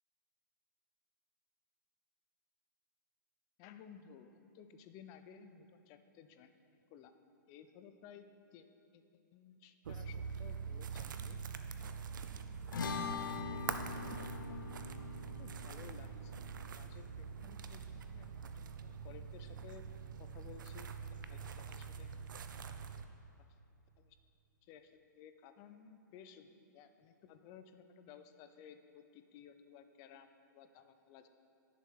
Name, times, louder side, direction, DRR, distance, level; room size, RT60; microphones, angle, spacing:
voice 1, 3.6-7.1 7.5-8.7 8.9-9.0 9.3-11.4 13.4-13.6 14.5-14.7 15.3-16.3 16.7-19.8 20.2-20.9 21.3-22.1 23.4-23.5 24.0-24.2 24.6-31.3, left 8 dB, 35° left, 9 dB, 0.6 m, -57 dB
sound 1, 9.8-23.1, right 6 dB, 80° right, 0.6 m, -45 dB
sound 2, 12.7-19.2, left 6 dB, 85° left, 0.8 m, -44 dB
11.0 x 6.9 x 4.7 m, 2.6 s
hypercardioid pair, 140°, 10 cm